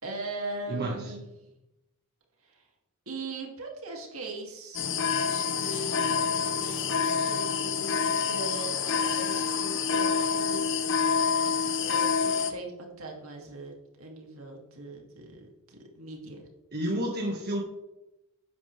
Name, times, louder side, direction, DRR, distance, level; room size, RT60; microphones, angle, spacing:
voice 1, 0.0-1.5 2.4-2.7 3.1-4.9 5.2-10.9 11.8-16.4, right 2 dB, 70° right, 0 dB, 2.8 m, -40 dB
voice 2, 0.7-1.0 16.7-17.6, right 1 dB, 45° right, -2 dB, 1.9 m, -30 dB
sound 1, 4.7-12.5, left 6 dB, 60° left, 1.0 m, -27 dB
11.5 x 9.7 x 3.5 m, 0.93 s
head